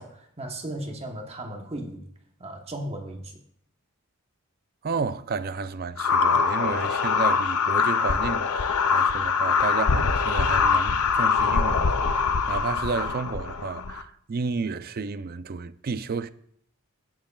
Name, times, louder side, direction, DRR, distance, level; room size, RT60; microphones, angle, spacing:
voice 1, 0.0-2.1 2.4-3.4, right 1 dB, 30° right, 1.0 m, -36 dB
voice 2, 4.8-16.3, right 4 dB, 45° right, 0.4 m, -32 dB
sound 1, 6.0-14.0, left 5 dB, 85° left, 0.7 m, -23 dB
16.5 x 7.5 x 2.4 m
head